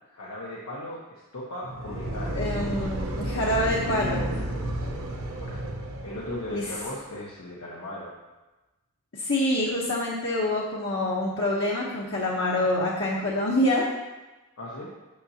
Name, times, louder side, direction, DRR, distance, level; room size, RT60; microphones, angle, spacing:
voice 1, 0.1-2.4 4.8-5.1 5.4-8.1 14.6-14.9, left 1 dB, 85° left, -5 dB, 1.2 m, -38 dB
sound 1, 1.6-6.8, right 1 dB, 65° right, 0.9 m, -32 dB
voice 2, 2.3-4.3 6.5-6.6 9.1-13.8, left 1 dB, 55° left, -5 dB, 1.0 m, -26 dB
8.7 x 6.8 x 2.8 m, 1.1 s
head